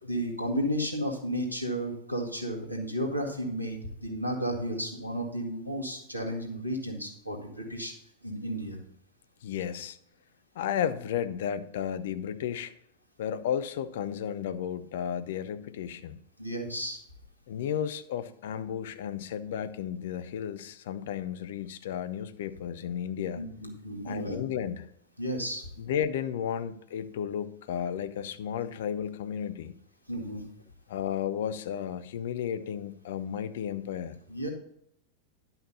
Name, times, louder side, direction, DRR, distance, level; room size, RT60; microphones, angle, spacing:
voice 1, 0.0-7.9 8.2-8.8 16.4-17.0 23.4-24.4 25.2-25.7 30.1-30.4 34.3-34.5, equal, 85° right, 1 dB, 2.0 m, -33 dB
voice 2, 9.4-10.0 10.5-12.7 13.2-16.2 17.5-23.4 24.0-24.9 25.8-29.7 30.9-34.2, left 9 dB, 55° left, 13 dB, 0.7 m, -33 dB
11.0 x 5.8 x 5.5 m, 0.74 s
figure-of-eight pair, 90°, 0 cm